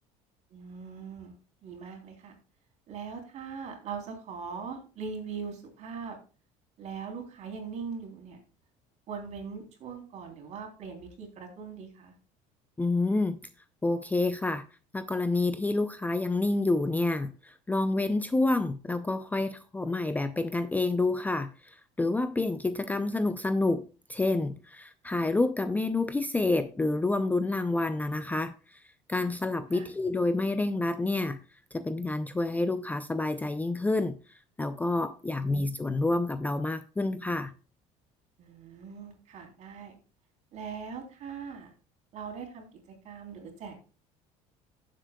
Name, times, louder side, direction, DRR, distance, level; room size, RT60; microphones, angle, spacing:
voice 1, 0.5-1.3 1.6-2.3 2.9-6.2 6.8-8.4 9.1-12.1 29.7-29.9 35.2-35.4 38.4-40.0 40.5-41.7 42.1-43.8, right 5 dB, 50° right, 3.4 m, -41 dB
voice 2, 12.8-13.4 13.8-14.7 14.9-28.8 29.1-31.4 31.7-34.2 34.6-37.5, left 2 dB, 10° left, 0.5 m, -28 dB
15.5 x 7.6 x 2.3 m
cardioid pair, 115°, 15 cm